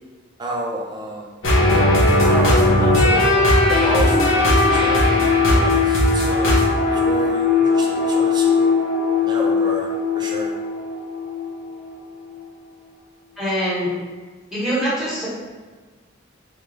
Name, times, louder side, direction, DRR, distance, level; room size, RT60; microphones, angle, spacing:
voice 1, 0.4-1.3 2.2-3.3 3.7-5.1 5.5-6.6 6.9-8.7 9.2-9.9 10.1-10.5, right 1 dB, 20° right, -1 dB, 0.5 m, -30 dB
sound 1, 1.4-12.0, left 2 dB, 90° left, 0.8 m, -18 dB
voice 2, 13.4-13.9 14.5-15.3, equal, ahead, -10 dB, 1.2 m, -23 dB
3.4 x 2.3 x 3.1 m, 1.4 s
head